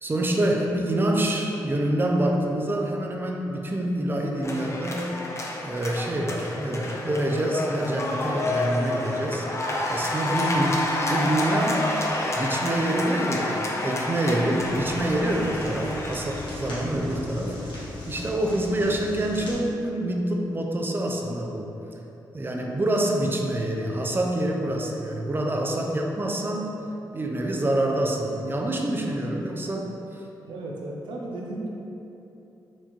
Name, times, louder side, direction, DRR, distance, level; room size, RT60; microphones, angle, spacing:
voice 1, 0.0-5.2 5.6-9.5 9.9-11.8 12.3-21.7 22.3-26.7 27.1-30.2, right 1 dB, 25° right, 1 dB, 0.5 m, -26 dB
sound 1, 4.4-16.8, left 1 dB, 35° left, 0.5 m, -29 dB
sound 2, 14.5-19.6, left 2 dB, 75° left, 1.2 m, -38 dB
voice 2, 30.5-31.7, right 2 dB, 85° right, -2 dB, 0.6 m, -34 dB
4.3 x 2.5 x 2.9 m, 2.9 s
cardioid pair, 65°, 8 cm